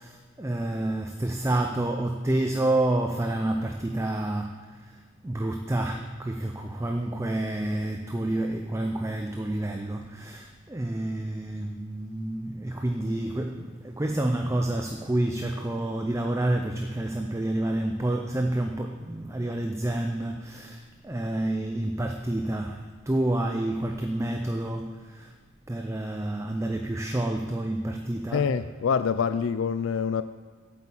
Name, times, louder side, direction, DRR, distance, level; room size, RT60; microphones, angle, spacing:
voice 1, 0.0-25.3 25.7-28.6, right 1 dB, 15° right, 4 dB, 0.4 m, -29 dB
voice 2, 28.3-30.2, left 6 dB, 65° left, 12 dB, 0.3 m, -26 dB
8.6 x 8.3 x 7.1 m, 1.5 s
head